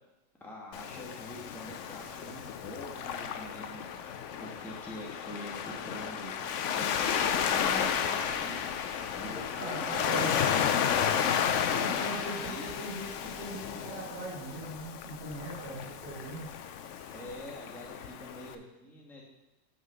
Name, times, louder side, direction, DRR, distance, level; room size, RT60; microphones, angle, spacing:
voice 1, 0.4-3.8 4.3-6.4 6.8-10.6 12.3-12.6 15.7-15.8 17.1-19.2, equal, ahead, -3 dB, 1.2 m, -45 dB
Waves surf, 0.7-18.6, left 8 dB, 90° left, 0.6 m, -32 dB
voice 2, 9.6-10.3 11.7-16.5, right 1 dB, 60° right, -9 dB, 2.8 m, -40 dB
5.9 x 5.5 x 6.3 m, 0.98 s
omnidirectional pair, 1.9 m